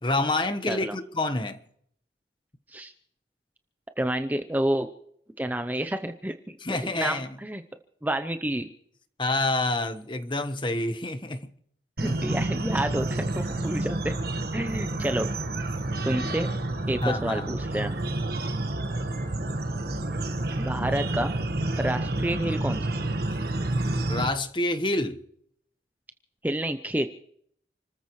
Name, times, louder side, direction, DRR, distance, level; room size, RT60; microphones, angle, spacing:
voice 1, 0.0-1.6 6.6-7.3 9.2-11.5 12.1-12.2 17.0-17.5 24.1-25.2, left 2 dB, 25° left, 1.2 m, -27 dB
voice 2, 4.0-4.9 5.4-7.6 8.0-8.7 12.0-14.2 14.5-15.3 16.1-16.5 16.9-17.9 20.6-21.4 21.8-23.0 26.4-27.1, right 1 dB, 10° right, 0.6 m, -29 dB
sound 1, 12.0-24.3, right 2 dB, 55° right, 1.4 m, -29 dB
29.5 x 14.0 x 3.2 m
head